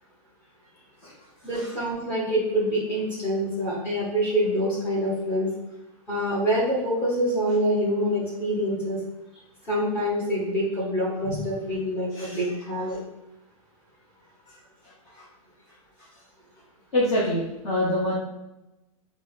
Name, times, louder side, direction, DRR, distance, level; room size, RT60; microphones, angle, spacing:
voice 1, 1.4-5.5 6.1-9.0 9.6-13.0, equal, 10° left, -6 dB, 0.8 m, -26 dB
voice 2, 16.9-18.1, left 1 dB, 45° left, -7 dB, 1.0 m, -26 dB
5.1 x 2.1 x 2.4 m, 0.95 s
supercardioid pair, 180°, 18 cm